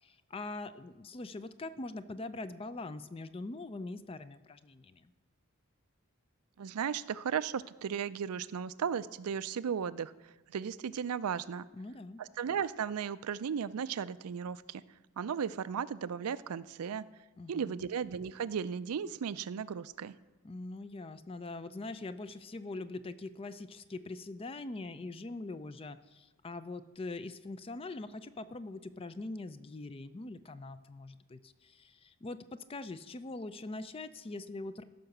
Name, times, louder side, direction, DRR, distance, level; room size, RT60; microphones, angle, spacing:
voice 1, 0.0-5.1 11.8-12.2 17.4-17.8 20.4-34.8, left 2 dB, 25° left, 13 dB, 0.4 m, -43 dB
voice 2, 6.6-10.1 10.5-11.7 12.2-14.8 15.2-17.0 17.5-20.1, right 7 dB, 80° right, 16 dB, 0.4 m, -35 dB
14.5 x 5.8 x 6.5 m, 1.1 s
head